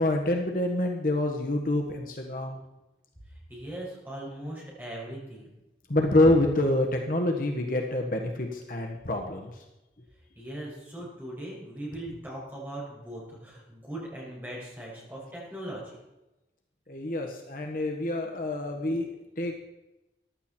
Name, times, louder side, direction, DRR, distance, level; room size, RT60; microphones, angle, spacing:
voice 1, 0.0-2.6 5.9-9.5 16.9-19.1 19.4-19.5, left 1 dB, 50° left, 2 dB, 1.4 m, -26 dB
voice 2, 3.5-5.5 10.4-16.0, right 1 dB, 10° right, -5 dB, 5.8 m, -39 dB
15.0 x 12.0 x 4.4 m, 0.97 s
head